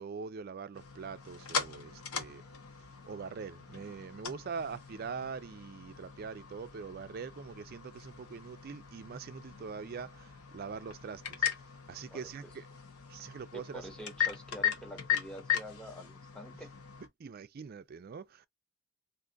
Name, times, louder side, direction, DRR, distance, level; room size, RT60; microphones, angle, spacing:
voice 1, 0.0-2.4 3.0-11.5 11.9-12.6 13.1-13.9 17.2-18.5, right 5 dB, 45° right, 0.3 m, -43 dB
sound 1, 0.7-17.1, left 8 dB, 90° left, 0.8 m, -39 dB
voice 2, 13.5-16.8, equal, 5° left, 0.7 m, -47 dB
2.5 x 2.4 x 3.7 m
head